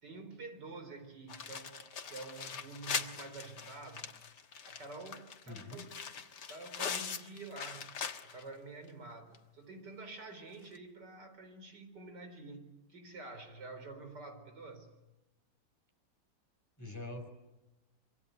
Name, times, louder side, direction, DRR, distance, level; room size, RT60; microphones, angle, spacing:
voice 1, 0.0-1.8 2.1-4.1 4.6-6.0 6.5-7.9 8.2-14.9, right 3 dB, 90° right, 7 dB, 4.8 m, -48 dB
sound 1, 1.3-8.5 8.9-9.0 9.3-9.4 10.6-10.8, left 6 dB, 80° left, 2.1 m, -41 dB
voice 2, 5.5-5.9 16.8-17.3, left 2 dB, 10° left, 3 dB, 5.5 m, -44 dB
25.5 x 24.5 x 9.2 m, 1.0 s
omnidirectional pair, 1.8 m